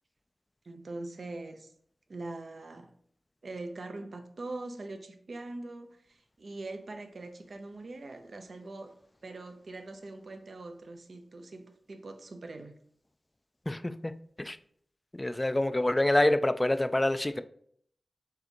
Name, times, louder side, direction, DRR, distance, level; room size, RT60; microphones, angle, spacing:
voice 1, 0.7-1.7 2.1-2.9 3.4-8.9 9.2-12.7, right 2 dB, 65° right, 0.6 m, -42 dB
voice 2, 13.7-14.1 14.4-14.6 15.2-17.4, left 1 dB, 25° left, 0.3 m, -26 dB
4.8 x 3.3 x 2.9 m
cardioid pair, 45°, 0 cm